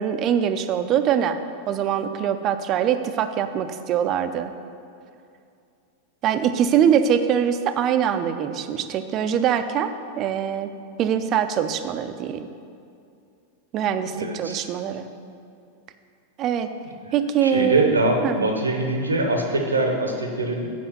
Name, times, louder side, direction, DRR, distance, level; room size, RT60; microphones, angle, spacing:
voice 1, 0.0-1.4 1.7-4.5 6.2-12.5 13.7-15.1 16.4-16.7 17.1-17.9 18.2-18.4, right 9 dB, 35° right, 9 dB, 0.5 m, -23 dB
voice 2, 14.1-14.7 17.4-20.7, right 2 dB, 80° right, 3 dB, 0.9 m, -23 dB
7.8 x 5.0 x 6.8 m, 2.5 s
figure-of-eight pair, 90°, 0 cm